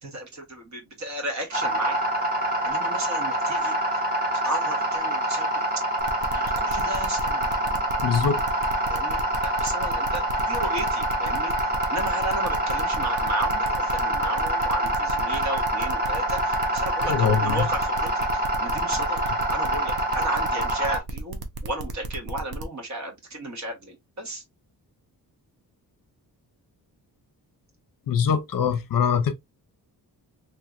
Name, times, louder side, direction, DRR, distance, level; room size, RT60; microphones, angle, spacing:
voice 1, 0.0-2.0 2.6-3.7 4.4-5.6 6.3-7.8 8.9-11.5 11.9-19.2 19.5-24.4, right 1 dB, 45° right, 1.3 m, -34 dB
sound 1, 1.5-21.0, right 1 dB, 25° right, 1.2 m, -26 dB
sound 2, 6.0-22.6, right 4 dB, 70° right, 0.8 m, -36 dB
voice 2, 8.0-8.4 17.0-17.7 28.1-29.3, left 7 dB, 60° left, 0.6 m, -23 dB
3.2 x 3.0 x 2.4 m
wide cardioid pair, 155°, 38 cm